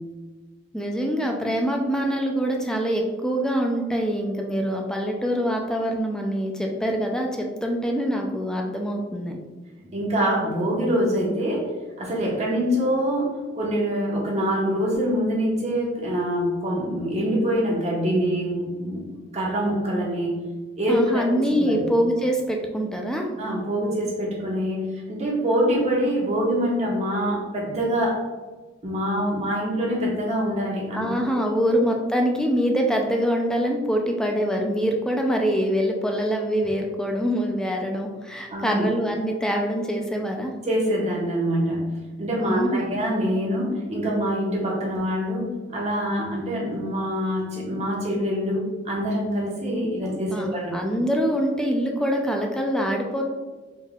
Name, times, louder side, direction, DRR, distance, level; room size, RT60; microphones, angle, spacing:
voice 1, 0.7-9.4 20.9-23.3 30.9-40.5 42.4-42.9 50.0-53.2, equal, 5° left, 1 dB, 0.5 m, -24 dB
voice 2, 9.7-20.3 20.8-21.8 23.4-28.2 28.8-31.1 38.5-38.9 40.6-41.8 42.2-50.8, equal, 40° right, -4 dB, 1.2 m, -25 dB
4.4 x 3.8 x 2.4 m, 1.3 s
head